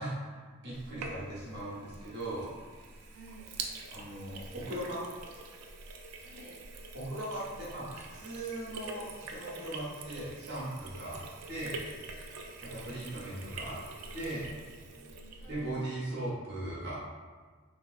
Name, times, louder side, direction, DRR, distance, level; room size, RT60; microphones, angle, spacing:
voice 1, 0.0-2.5 3.9-5.0 6.9-11.2 11.5-11.8 12.6-13.8 14.1-14.5 15.5-17.0, right 1 dB, 55° right, -7 dB, 1.1 m, -38 dB
Sink (filling or washing), 0.7-15.8, right 3 dB, 80° right, 0.4 m, -45 dB
voice 2, 3.0-3.5 6.1-6.6 14.9-15.7, right 2 dB, 15° left, -10 dB, 1.1 m, -54 dB
3.3 x 3.2 x 2.4 m, 1.5 s
head